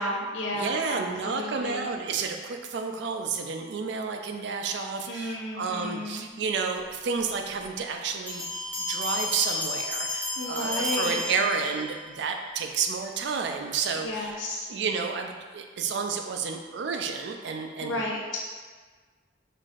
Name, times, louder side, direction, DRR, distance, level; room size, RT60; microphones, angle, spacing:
voice 1, 0.0-1.9 5.1-6.3 10.4-11.3 14.0-14.7 17.8-18.4, left 1 dB, 80° left, -2 dB, 0.6 m, -32 dB
voice 2, 0.5-8.5 8.8-14.4 14.7-18.0, right 5 dB, 60° right, 4 dB, 0.3 m, -31 dB
Bell, 8.3-12.0, left 2 dB, 10° left, 0.9 m, -32 dB
5.6 x 2.5 x 2.4 m, 1.4 s
head